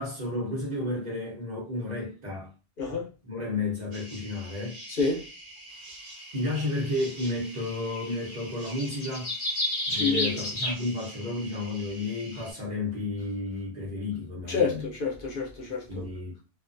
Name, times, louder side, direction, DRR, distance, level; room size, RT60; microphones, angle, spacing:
voice 1, 0.0-2.5 3.2-4.8 6.3-9.3 9.9-14.8 15.9-16.3, left 2 dB, 45° right, 0.9 m, -32 dB
voice 2, 2.8-3.1 4.9-5.2 9.9-10.4 14.5-16.0, left 4 dB, 60° left, 0.8 m, -28 dB
sound 1, 3.9-12.5, right 1 dB, 65° right, 1.2 m, -46 dB
sound 2, 6.0-6.1 7.2-7.3 7.5-10.7, left 1 dB, 40° left, 0.3 m, -31 dB
2.4 x 2.2 x 2.5 m
omnidirectional pair, 1.1 m